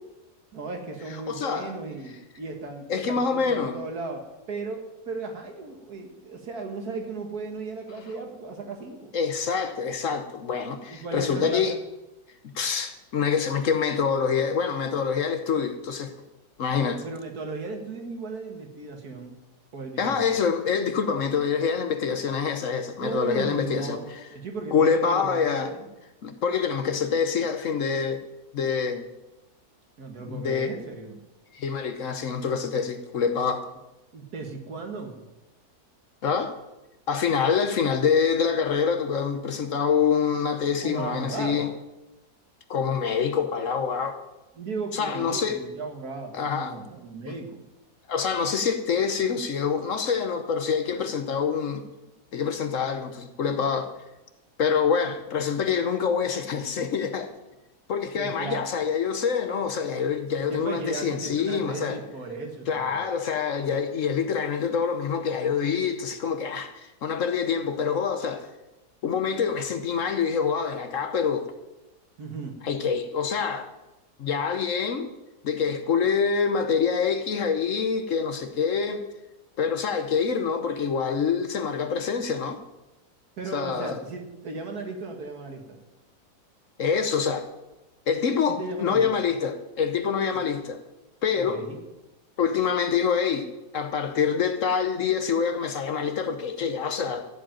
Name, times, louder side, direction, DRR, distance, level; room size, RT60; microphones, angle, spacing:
voice 1, 0.5-9.1 10.9-11.8 17.0-19.4 19.7-20.2 23.0-25.9 30.0-31.2 34.1-35.3 40.8-41.7 44.6-47.6 58.2-58.7 60.5-63.0 72.2-72.6 83.4-85.8 88.5-89.3 90.3-90.4 91.3-91.8, right 3 dB, 70° right, 2.1 m, -36 dB
voice 2, 1.3-1.7 2.9-3.8 9.1-11.8 12.4-16.1 16.6-17.0 20.0-24.0 24.7-25.7 26.2-28.2 28.5-29.1 30.3-30.7 31.5-33.6 36.2-36.6 37.1-41.7 42.7-44.2 44.9-45.6 46.3-46.7 47.3-47.4 48.1-51.8 52.3-53.9 54.6-57.3 57.9-62.0 62.7-68.5 69.0-71.5 72.6-73.7 74.2-75.1 75.4-79.0 79.6-82.6 83.5-84.0 86.8-87.5 88.1-90.8 91.2-91.6 92.4-97.3, left 6 dB, 60° left, 1.1 m, -26 dB
14.5 x 5.1 x 9.0 m
omnidirectional pair, 1.7 m